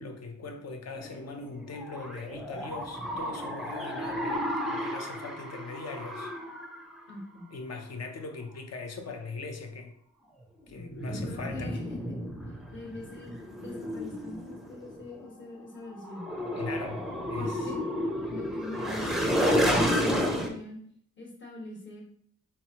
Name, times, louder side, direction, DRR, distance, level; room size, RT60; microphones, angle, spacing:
voice 1, 0.0-6.3 7.5-9.9 10.7-11.7 16.6-17.0 17.3-17.7, left 4 dB, 55° left, 5 dB, 0.6 m, -40 dB
sound 1, 1.0-7.0 10.7-15.1 15.8-20.5, equal, ahead, 0.5 m, -32 dB
voice 2, 7.1-7.5 11.0-12.3 12.7-16.3 17.3-17.9 18.3-20.8 21.2-22.0, left 2 dB, 40° left, -1 dB, 1.2 m, -43 dB
4.2 x 3.0 x 2.8 m, 0.65 s
wide cardioid pair, 125°, 31 cm